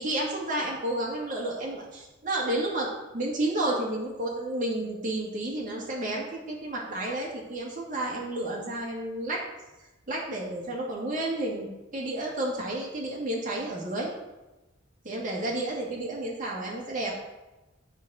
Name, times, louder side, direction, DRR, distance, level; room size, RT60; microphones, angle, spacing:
voice 1, 0.0-2.9 3.1-9.4 10.1-14.1 15.1-17.1, right 1 dB, 40° right, -3 dB, 2.4 m, -31 dB
7.5 x 5.3 x 6.5 m, 1.0 s
head